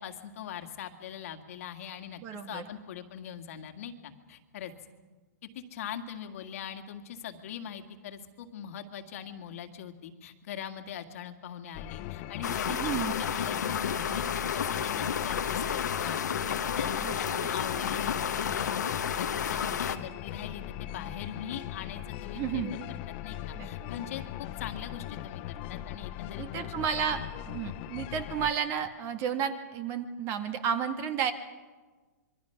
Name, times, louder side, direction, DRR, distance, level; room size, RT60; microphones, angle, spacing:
voice 1, 0.0-2.2 2.5-4.7 5.4-14.2 14.5-22.8 23.2-26.6, left 8 dB, 55° left, 6 dB, 2.0 m, -42 dB
voice 2, 2.2-2.7 12.7-13.2 17.0-17.1 17.4-17.5 22.4-22.7 23.5-23.7 26.4-31.3, right 8 dB, 30° right, 8 dB, 1.7 m, -32 dB
sound 1, 11.7-28.5, left 13 dB, 35° left, 1.0 m, -40 dB
sound 2, 12.4-20.0, left 7 dB, 90° left, 1.4 m, -31 dB
26.5 x 23.5 x 5.9 m, 1.3 s
hypercardioid pair, 150°, 9 cm